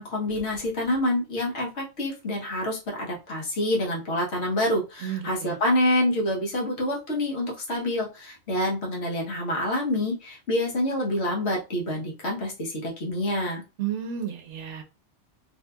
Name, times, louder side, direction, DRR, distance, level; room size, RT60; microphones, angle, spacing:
voice 1, 0.0-13.6, left 1 dB, 65° left, 1.2 m, -27 dB
voice 2, 5.0-5.5 13.8-14.8, right 9 dB, 80° right, 0.9 m, -32 dB
2.7 x 2.6 x 2.2 m
omnidirectional pair, 1.2 m